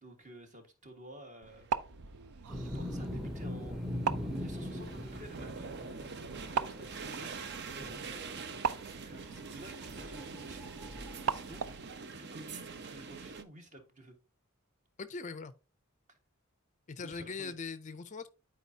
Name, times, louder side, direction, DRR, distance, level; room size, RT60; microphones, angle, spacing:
voice 1, 0.0-1.7 2.5-3.8 4.2-10.7 11.2-11.7 12.0-14.1 17.0-17.5, right 1 dB, 35° right, 1.5 m, -52 dB
sound 1, 1.4-12.0, right 6 dB, 90° right, 0.5 m, -40 dB
sound 2, 1.5-13.4, right 4 dB, 50° right, 0.6 m, -45 dB
sound 3, 2.5-11.8, left 1 dB, ahead, 0.7 m, -42 dB
voice 2, 15.0-15.5 16.9-18.3, left 4 dB, 35° left, 0.4 m, -41 dB
11.5 x 4.7 x 2.7 m
head